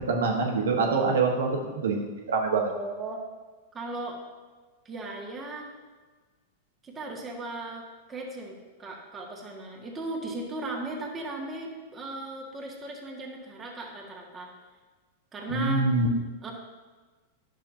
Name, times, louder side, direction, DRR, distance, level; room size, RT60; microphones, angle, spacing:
voice 1, 0.1-2.7 15.5-16.1, right 3 dB, 90° right, 1 dB, 1.3 m, -25 dB
voice 2, 2.7-3.2 3.7-4.2 4.8-5.7 6.8-7.8 8.1-14.5 15.3-15.9 16.4-16.5, right 2 dB, 20° right, -1 dB, 1.7 m, -37 dB
10.5 x 6.5 x 2.8 m, 1.3 s
hypercardioid pair, 120°, 0 cm